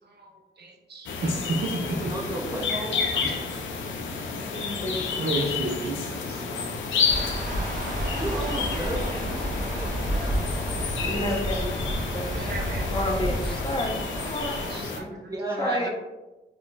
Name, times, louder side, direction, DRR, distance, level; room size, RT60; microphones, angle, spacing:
voice 1, 0.0-2.1 3.1-3.6 5.2-6.4 9.6-9.8 10.1-10.6 11.3-11.6 12.3-12.9 13.4-13.6 14.1-15.9, right 2 dB, 60° right, 1 dB, 0.7 m, -34 dB
sound 1, 1.1-15.0, left 5 dB, 85° left, 0.4 m, -31 dB
voice 2, 2.1-3.0 8.1-11.2 14.7-15.9, right 1 dB, 20° right, -2 dB, 0.9 m, -34 dB
voice 3, 4.3-5.1 11.0-14.6 15.6-15.9, left 1 dB, 25° left, 1 dB, 0.7 m, -31 dB
sound 2, 7.1-14.8, equal, 45° right, 1.0 m, -30 dB
4.2 x 2.4 x 2.3 m, 1.1 s
cardioid pair, 50°, 19 cm